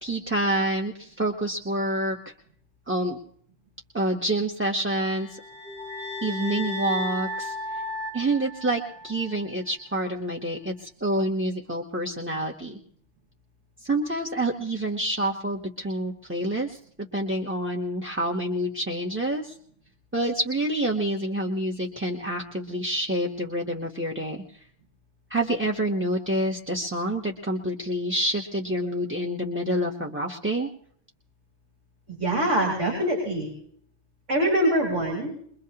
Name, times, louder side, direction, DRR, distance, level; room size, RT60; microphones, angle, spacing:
voice 1, 0.0-2.3 2.9-3.2 3.9-5.4 6.2-7.8 8.1-12.8 13.8-16.8 17.1-19.6 20.1-24.6 25.3-30.7, right 1 dB, 10° right, 2 dB, 0.8 m, -27 dB
sound 1, 5.1-9.4, left 2 dB, 50° right, 4.8 m, -35 dB
voice 2, 32.1-33.5 34.3-35.3, right 1 dB, 70° right, -4 dB, 5.1 m, -24 dB
23.0 x 22.0 x 2.9 m, 0.63 s
omnidirectional pair, 1.3 m